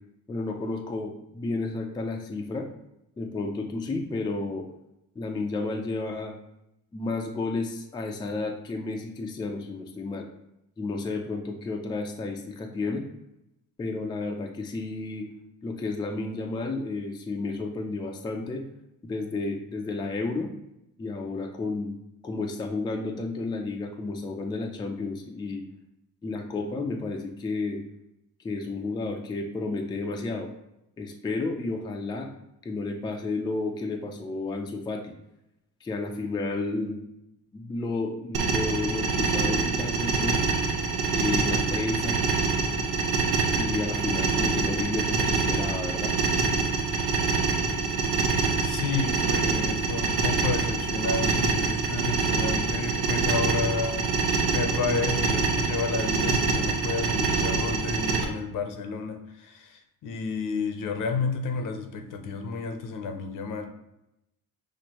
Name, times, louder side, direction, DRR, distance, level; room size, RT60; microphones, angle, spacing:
voice 1, 0.3-2.7 3.2-4.7 5.2-6.3 6.9-10.3 10.8-13.1 13.8-15.3 15.6-18.6 19.0-20.5 21.0-22.0 22.2-25.6 26.2-27.8 28.4-30.5 31.0-32.3 32.6-35.1 35.8-37.0 37.5-40.4 41.1-42.2 43.5-46.2, left 3 dB, 15° left, 3 dB, 0.3 m, -31 dB
sound 1, 38.3-58.2, right 4 dB, 85° right, 0.8 m, -25 dB
voice 2, 48.6-54.0 54.4-63.7, left 4 dB, 60° left, 7 dB, 0.7 m, -31 dB
6.0 x 2.5 x 2.9 m, 0.85 s
cardioid pair, 130°, 36 cm